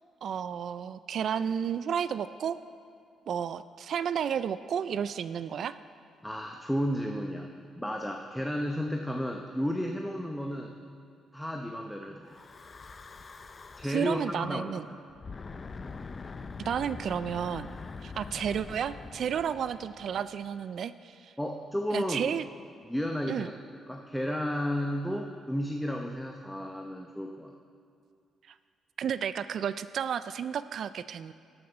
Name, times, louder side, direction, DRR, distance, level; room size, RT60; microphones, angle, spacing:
voice 1, 0.2-2.6 3.3-5.8 13.9-14.9 16.6-17.8 18.0-21.3 21.9-22.4 23.3-23.5 29.0-31.3, right 8 dB, 65° right, 14 dB, 0.3 m, -32 dB
voice 2, 6.2-10.8 11.3-12.4 13.8-15.0 21.4-22.3 22.9-23.5 23.9-27.5, equal, 5° left, 2 dB, 0.7 m, -33 dB
Breathing / Wind, 12.2-14.2 15.1-20.5, left 4 dB, 35° left, 0.5 m, -44 dB
13.5 x 6.6 x 5.6 m, 2.3 s
cardioid pair, 90°, 0 cm